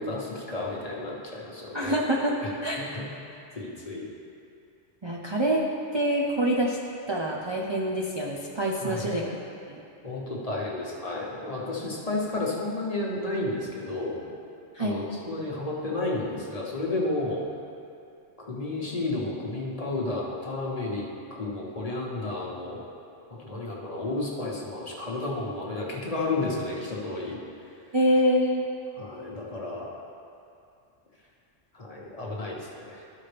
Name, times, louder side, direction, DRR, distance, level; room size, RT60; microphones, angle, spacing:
voice 1, 0.0-2.0 2.4-2.5 2.9-3.0 3.5-4.1 8.8-9.2 10.0-14.3 14.8-17.4 18.4-21.0 21.3-22.8 23.3-27.4 28.9-29.9 31.7-33.0, left 2 dB, 30° left, -3 dB, 1.1 m, -32 dB
voice 2, 1.7-2.8 5.0-5.6 5.9-6.8 7.1-9.3 9.7-9.8 14.7-15.0 26.4-26.5 27.9-28.7, equal, 35° right, -3 dB, 0.5 m, -26 dB
13.0 x 5.7 x 3.4 m, 2.5 s
omnidirectional pair, 1.3 m